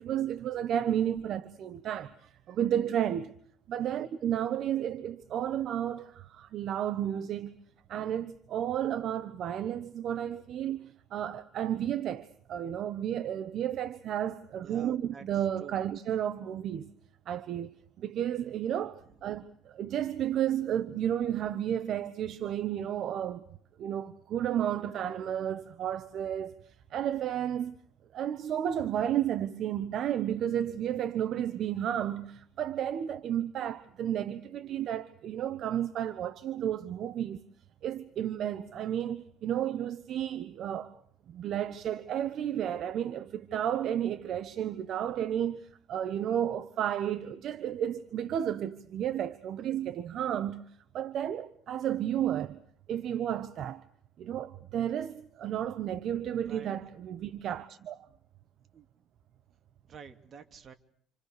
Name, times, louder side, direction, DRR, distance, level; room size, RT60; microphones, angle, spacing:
voice 1, 0.0-3.3 3.7-7.5 7.9-16.9 17.3-23.4 23.8-27.8 28.1-37.5 37.8-40.9 41.3-50.6 50.9-52.6 52.9-53.8 54.2-58.1, right 10 dB, 55° right, 1.1 m, -32 dB
voice 2, 3.8-4.1 14.6-15.2 15.6-15.7 56.4-56.8 58.7-58.9 59.9-60.7, right 7 dB, 40° right, 2.8 m, -49 dB
29.5 x 27.0 x 6.8 m
cardioid pair, 125°, 0 cm